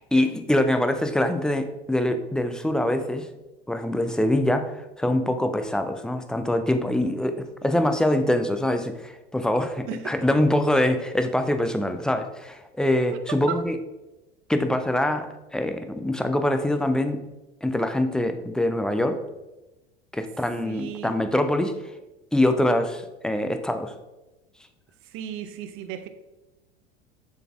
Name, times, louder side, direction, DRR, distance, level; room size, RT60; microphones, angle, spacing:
voice 1, 0.1-3.3 3.7-13.8 14.5-17.2 17.6-19.2 20.1-21.8 22.3-23.9, left 1 dB, 5° left, 0.4 m, -24 dB
voice 2, 9.9-10.2 13.1-13.7 20.6-21.3 25.0-26.1, right 9 dB, 45° right, 0.6 m, -35 dB
6.6 x 4.1 x 3.6 m
figure-of-eight pair, 75°, 29 cm